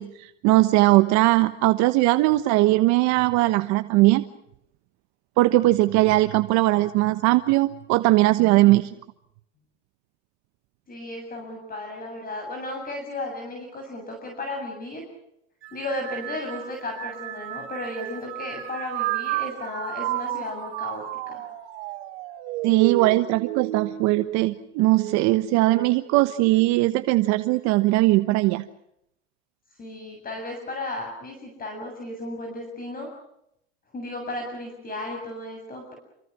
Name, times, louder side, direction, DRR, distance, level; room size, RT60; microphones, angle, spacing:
voice 1, 0.0-4.2 5.4-8.9 22.6-28.6, right 18 dB, 55° right, 10 dB, 1.2 m, -20 dB
voice 2, 10.9-15.0 15.7-21.5 29.8-33.1 33.9-35.9, left 1 dB, 25° left, 3 dB, 7.7 m, -34 dB
sound 1, 15.6-25.2 25.7-26.3 27.2-27.6, right 15 dB, 70° right, 3.2 m, -33 dB
27.5 x 24.0 x 6.2 m, 0.79 s
supercardioid pair, 110°, 33 cm